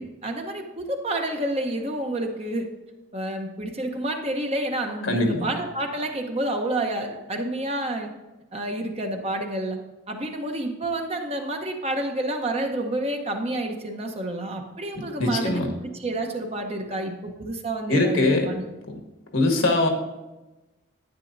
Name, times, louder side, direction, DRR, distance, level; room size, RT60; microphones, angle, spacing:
voice 1, 0.0-2.7 3.1-8.1 8.5-9.8 10.1-18.7, right 1 dB, 30° right, 3 dB, 0.8 m, -29 dB
voice 2, 5.1-5.5 15.2-15.7 17.9-18.5 19.3-19.9, left 2 dB, 75° left, 3 dB, 1.4 m, -21 dB
10.5 x 9.0 x 2.6 m, 1.1 s
head